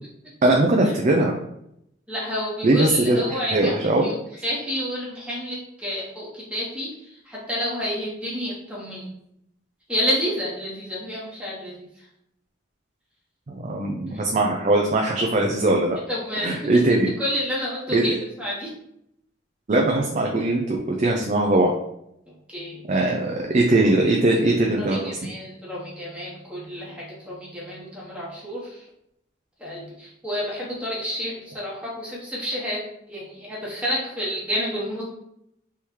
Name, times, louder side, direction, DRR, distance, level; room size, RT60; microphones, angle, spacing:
voice 1, 0.4-1.3 2.6-4.1 13.5-16.0 16.4-17.1 17.9-18.0 19.7-21.7 22.9-25.0, right 2 dB, 40° right, 1 dB, 0.4 m, -20 dB
voice 2, 2.1-3.7 4.0-4.2 4.4-9.1 9.9-12.1 14.1-14.3 16.1-16.8 17.2-18.7 22.3-22.8 24.8-28.8 29.6-32.8 33.1-35.0, equal, 5° right, -5 dB, 1.0 m, -30 dB
3.5 x 3.1 x 4.4 m, 0.79 s
head